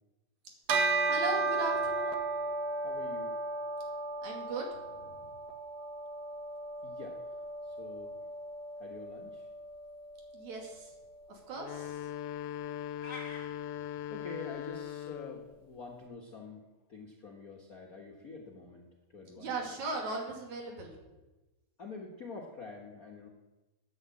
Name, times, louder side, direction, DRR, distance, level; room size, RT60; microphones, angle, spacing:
Bell, 0.7-10.4, right 3 dB, 55° right, 1.1 m, -35 dB
voice 1, 1.1-2.2 4.2-4.7 5.0-5.1 10.3-10.9 11.3-12.0 19.4-20.9, right 3 dB, 75° right, 1 dB, 3.8 m, -38 dB
voice 2, 2.8-3.4 6.8-7.2 7.6-8.2 8.8-9.4 14.1-16.6 16.9-18.9 19.1-19.5 21.8-23.3, left 4 dB, 50° left, 0 dB, 1.1 m, -46 dB
sound 1, 11.5-15.5, left 11 dB, 75° left, 1.7 m, -40 dB
sound 2, 13.0-13.5, left 3 dB, 20° left, 1.6 m, -44 dB
9.8 x 8.7 x 8.3 m, 1.1 s
omnidirectional pair, 3.3 m